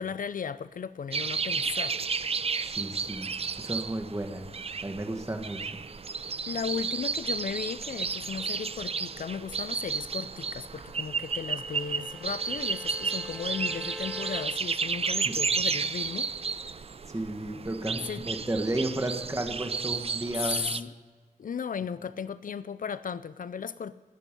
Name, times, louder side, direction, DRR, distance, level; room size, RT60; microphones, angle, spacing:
voice 1, 0.0-2.0 6.5-16.3 18.1-18.2 20.4-20.9 21.4-23.9, left 6 dB, 70° left, 0.5 m, -36 dB
sound 1, 1.1-20.8, right 5 dB, 45° right, 0.5 m, -32 dB
voice 2, 2.6-3.3 3.6-4.4 4.8-5.7 15.2-15.4 17.1-20.7, right 1 dB, 20° right, 1.8 m, -33 dB
sound 2, 9.5-14.4, left 2 dB, 5° left, 1.7 m, -46 dB
20.0 x 8.4 x 5.4 m
wide cardioid pair, 75°, 15 cm